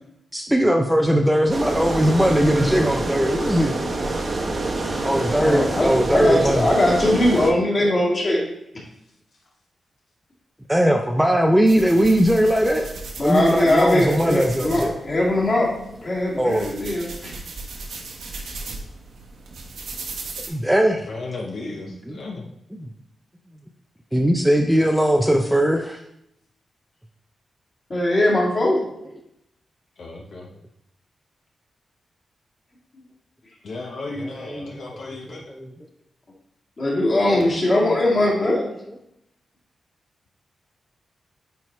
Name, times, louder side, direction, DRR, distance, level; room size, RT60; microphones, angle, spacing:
voice 1, 0.3-3.8 5.0-6.7 10.7-12.9 13.2-14.9 16.4-16.7 20.5-21.1 22.1-22.2 22.8-22.9 24.1-26.0 34.2-34.8 35.5-35.7, equal, 5° right, 2 dB, 0.5 m, -19 dB
sound 1, 1.5-7.5, right 2 dB, 30° right, 0.9 m, -26 dB
voice 2, 5.3-8.5 13.2-15.7 16.0-17.3 27.9-28.8 36.8-38.7, left 1 dB, 30° left, -4 dB, 2.2 m, -20 dB
sound 2, 11.6-20.5, right 3 dB, 85° right, 1.2 m, -37 dB
voice 3, 21.1-22.5 30.0-30.5 33.6-35.5 37.2-37.5, left 3 dB, 55° left, -1 dB, 0.9 m, -34 dB
9.1 x 4.6 x 3.1 m, 0.76 s
wide cardioid pair, 170°, 0 cm